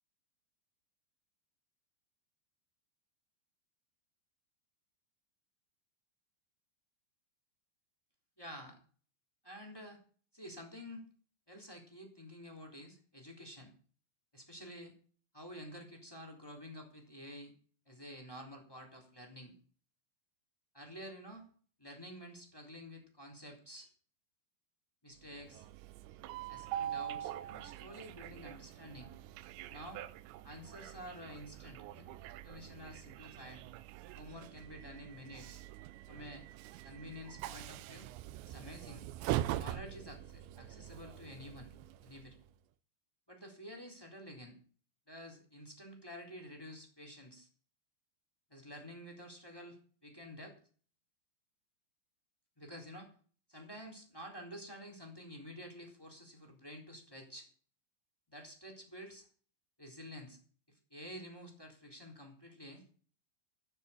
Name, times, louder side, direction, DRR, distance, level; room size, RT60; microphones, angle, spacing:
voice 1, 8.4-8.8 9.4-10.0 10.3-11.1 11.5-13.7 14.3-14.9 15.3-17.5 17.8-19.5 20.7-21.4 21.8-23.9 25.0-25.7 26.5-29.1 29.7-30.0 30.4-33.6 34.1-35.6 36.1-36.4 36.8-38.1 38.4-39.1 39.5-41.7 42.0-42.4 43.3-44.6 45.1-47.5 48.5-50.6 52.6-53.1 53.5-57.5 58.3-59.3 59.8-60.4 60.7-62.8, equal, 5° left, 1 dB, 2.6 m, -50 dB
Train, 25.2-42.5, right 13 dB, 80° right, 2.7 m, -43 dB
15.0 x 7.1 x 7.2 m, 0.43 s
omnidirectional pair, 5.7 m